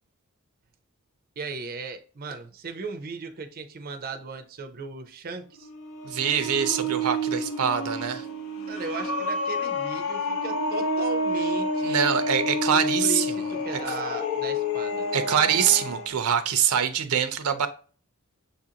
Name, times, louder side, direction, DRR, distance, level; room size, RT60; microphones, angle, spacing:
voice 1, 1.4-5.7 8.7-12.0 12.7-15.1, right 4 dB, 45° right, 0.5 m, -37 dB
sound 1, 5.6-16.1, left 1 dB, 85° left, 0.8 m, -29 dB
voice 2, 6.0-8.2 11.8-13.5 15.1-17.7, right 8 dB, 90° right, 0.5 m, -24 dB
6.6 x 2.5 x 2.7 m
head